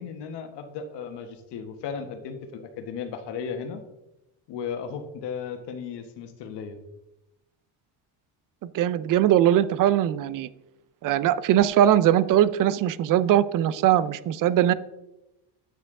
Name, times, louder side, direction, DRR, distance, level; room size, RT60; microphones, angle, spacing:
voice 1, 0.0-3.8 4.5-6.8, left 6 dB, 70° left, 7 dB, 1.3 m, -35 dB
voice 2, 8.6-10.5 11.0-14.7, right 11 dB, 50° right, 17 dB, 0.5 m, -21 dB
9.2 x 6.8 x 3.7 m, 0.94 s
cardioid pair, 135°, 43 cm